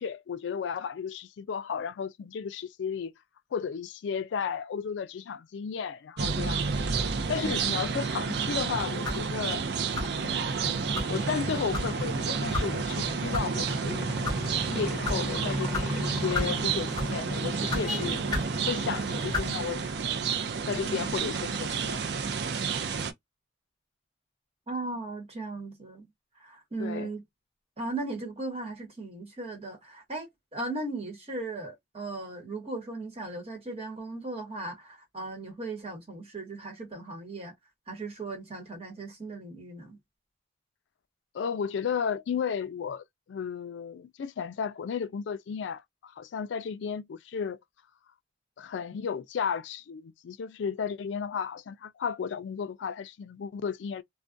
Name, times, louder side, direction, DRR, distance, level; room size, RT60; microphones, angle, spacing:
voice 1, 0.0-3.1 3.5-6.6 7.3-9.6 10.0-10.6 11.1-14.3 14.7-18.2 18.6-20.3 20.7-22.2 26.8-27.1 41.3-47.6 48.6-54.0, left 6 dB, 80° left, 0.3 m, -34 dB
sound 1, 6.2-23.1, right 5 dB, 65° right, 0.4 m, -31 dB
sound 2, 9.0-9.3 9.9-10.2 10.9-11.1 11.7-11.9 12.5-12.7 13.3-13.5 14.1-14.4 15.0-15.2 15.7-15.9 16.3-16.6 16.9-17.2 17.7-17.8 18.3-18.5 19.3-19.5, left 2 dB, 20° left, 0.6 m, -31 dB
sound 3, 10.6-19.4, equal, 5° right, 1.0 m, -36 dB
voice 2, 24.7-26.0 26.4-27.2 27.8-37.5 37.9-40.0, right 2 dB, 35° right, 1.1 m, -37 dB
2.3 x 2.2 x 2.5 m
head